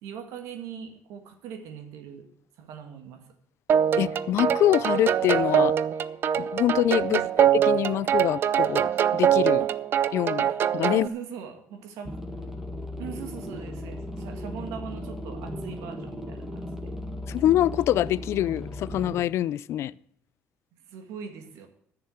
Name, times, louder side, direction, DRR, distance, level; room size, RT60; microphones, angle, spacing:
voice 1, 0.0-2.3 2.6-3.3 7.1-7.3 9.6-9.7 10.9-12.2 13.0-16.9 20.7-21.7, right 7 dB, 90° right, 6 dB, 2.0 m, -40 dB
sound 1, 3.7-11.1, right 9 dB, 45° right, 0.5 m, -23 dB
voice 2, 4.0-5.7 6.4-9.6 10.1-10.5 10.7-11.1 17.3-19.9, left 13 dB, 60° left, 20 dB, 0.4 m, -25 dB
sound 2, 12.1-19.2, left 1 dB, 5° right, 1.6 m, -36 dB
10.5 x 6.8 x 9.0 m, 0.69 s
cardioid pair, 130°, 5 cm